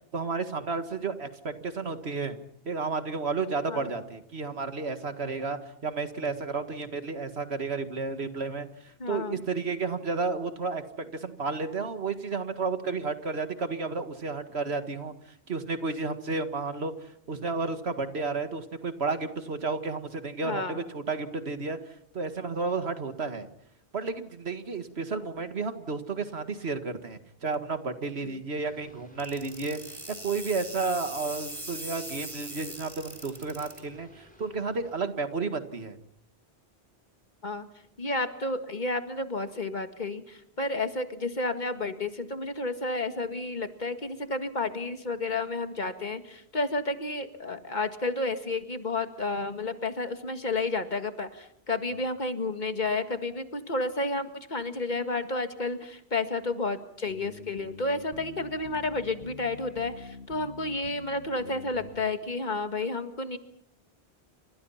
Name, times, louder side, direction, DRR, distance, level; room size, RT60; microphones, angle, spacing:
voice 1, 0.1-2.4 2.7-8.7 9.1-15.1 15.5-16.9 17.3-21.8 22.1-23.5 23.9-29.8 30.2-36.0, right 4 dB, 75° right, 9 dB, 2.0 m, -32 dB
voice 2, 9.0-9.4 20.4-20.8 28.2-28.4 37.4-37.7 38.0-63.4, left 2 dB, 45° left, 8 dB, 2.0 m, -31 dB
sound 1, 28.6-35.1, left 1 dB, 5° left, 7.8 m, -57 dB
sound 2, 29.2-33.8, right 1 dB, 40° right, 4.9 m, -40 dB
sound 3, 57.1-62.1, left 3 dB, 85° left, 2.2 m, -46 dB
30.0 x 26.0 x 5.8 m, 0.71 s
omnidirectional pair, 1.1 m